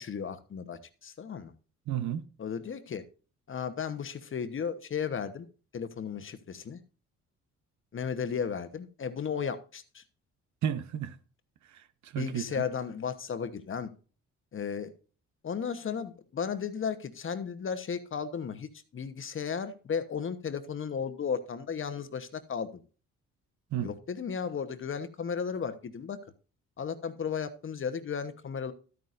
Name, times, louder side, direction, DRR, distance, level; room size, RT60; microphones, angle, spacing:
voice 1, 0.0-1.5 2.4-3.0 3.5-5.5 5.7-6.8 7.9-10.0 12.2-13.9 14.5-14.9 15.4-22.8 23.8-26.2 26.8-28.7, left 6 dB, 45° left, 1.1 m, -34 dB
voice 2, 1.9-2.3 10.6-11.2 11.7-12.6 23.7-23.9, right 10 dB, 70° right, 0.9 m, -33 dB
12.5 x 9.4 x 2.6 m
cardioid pair, 90°, 30 cm